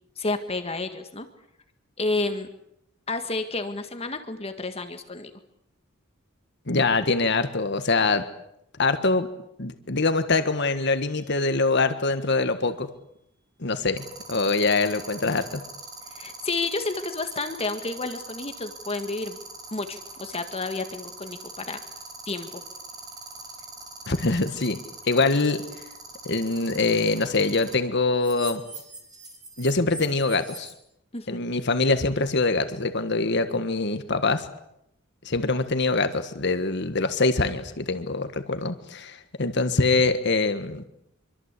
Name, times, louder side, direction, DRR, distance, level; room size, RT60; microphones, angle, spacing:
voice 1, 0.2-1.3 2.0-2.5 3.1-5.3 16.1-19.4 19.7-21.8 22.3-22.6 31.1-31.4, left 3 dB, 30° left, 7 dB, 1.8 m, -30 dB
voice 2, 6.7-8.3 8.8-9.3 9.6-12.9 13.6-15.6 24.1-24.8 25.1-25.6 26.2-28.6 29.6-30.7 31.3-34.5 35.2-40.8, left 3 dB, 55° left, 9 dB, 1.6 m, -24 dB
sound 1, 11.1-11.4 14.0-27.7 28.2-30.7, right 4 dB, 20° right, 5.0 m, -41 dB
25.5 x 24.0 x 8.4 m, 0.79 s
head